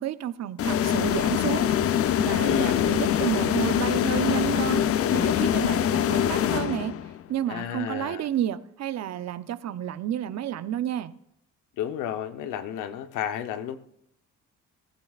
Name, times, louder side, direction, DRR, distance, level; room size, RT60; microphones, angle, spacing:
voice 1, 0.0-1.7 2.2-4.8 5.1-6.9 7.3-11.1, right 11 dB, 60° right, 0.6 m, -30 dB
sound 1, 0.6-7.2, left 10 dB, 50° left, 0.5 m, -24 dB
voice 2, 2.4-3.2 7.5-8.3 11.8-13.8, left 9 dB, 90° left, 0.9 m, -31 dB
15.5 x 14.5 x 2.4 m
cardioid pair, 90°, 30 cm